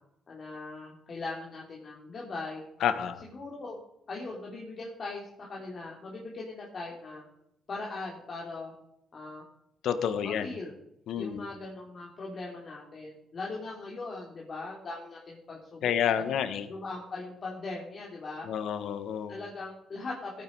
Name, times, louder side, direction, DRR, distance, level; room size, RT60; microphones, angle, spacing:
voice 1, 0.3-2.7 3.2-3.8 4.1-7.3 7.7-8.7 9.1-9.4 10.2-10.7 11.1-15.9 16.2-16.4 16.7-18.5 19.3-20.3, left 3 dB, 45° left, -3 dB, 3.7 m, -40 dB
voice 2, 2.8-3.2 9.8-10.6 11.1-11.5 15.8-16.7 18.4-19.3, left 8 dB, 75° left, 11 dB, 1.4 m, -29 dB
17.5 x 9.6 x 4.8 m, 0.80 s
cardioid pair, 90°, 0 cm